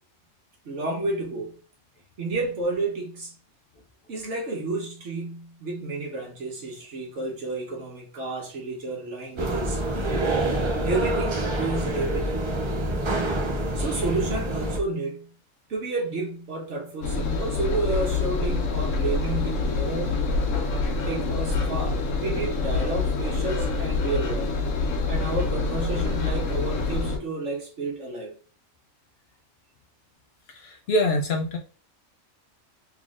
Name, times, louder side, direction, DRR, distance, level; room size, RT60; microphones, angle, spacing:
voice 1, 0.6-1.6 2.2-3.4 4.1-9.8 10.8-12.4 13.7-15.3 15.7-20.3 21.1-24.5 25.1-28.3, right 2 dB, 65° right, 1.3 m, -31 dB
sound 1, 9.4-14.8, right 1 dB, 40° right, 0.4 m, -26 dB
Engine, 17.0-27.2, left 3 dB, 75° left, 1.1 m, -26 dB
voice 2, 30.5-31.6, left 1 dB, 60° left, 0.7 m, -25 dB
3.6 x 3.4 x 2.5 m
omnidirectional pair, 1.3 m